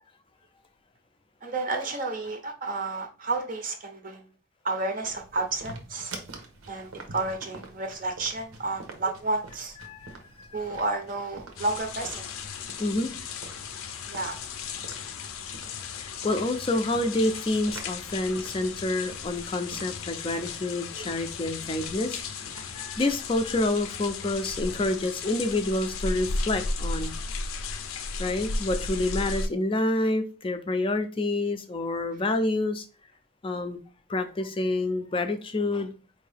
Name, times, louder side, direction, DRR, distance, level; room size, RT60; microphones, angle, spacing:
voice 1, 1.4-4.2 4.6-6.1 6.7-9.8 10.5-12.3 14.1-14.4 20.9-21.0, right 3 dB, 40° right, 0.6 m, -31 dB
sound 1, 5.0-22.8, right 3 dB, 90° right, 0.9 m, -47 dB
voice 2, 9.8-10.6 12.8-13.1 16.0-22.2 22.5-27.1 28.2-32.8 33.4-33.8 34.1-35.9, left 2 dB, 25° left, 0.4 m, -28 dB
sound 2, 11.6-29.5, left 4 dB, 85° left, 0.5 m, -35 dB
4.5 x 2.6 x 3.3 m
head